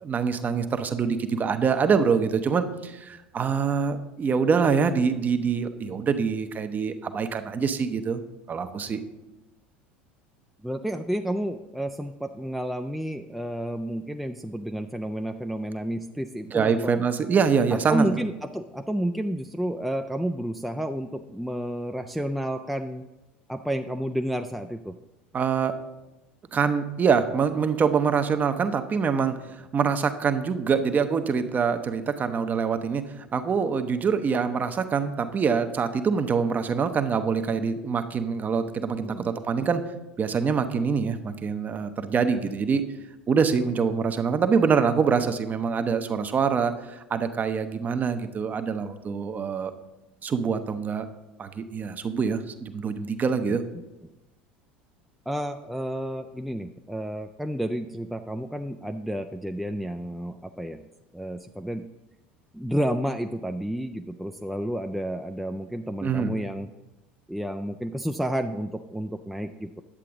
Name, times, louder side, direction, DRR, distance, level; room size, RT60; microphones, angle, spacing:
voice 1, 0.0-8.2 8.5-9.0 16.5-18.1 25.3-25.7 26.5-33.0 33.3-39.9 40.2-42.9 43.3-49.7 50.2-51.1 51.4-53.6 66.0-66.3, right 6 dB, 30° right, 9 dB, 0.7 m, -25 dB
voice 2, 10.6-17.0 17.7-23.0 23.5-25.0 38.9-39.3 55.3-60.8 61.1-61.9 62.5-66.7 67.3-69.8, right 1 dB, ahead, 5 dB, 0.4 m, -30 dB
10.0 x 7.5 x 3.7 m, 1.0 s
figure-of-eight pair, 75°, 6 cm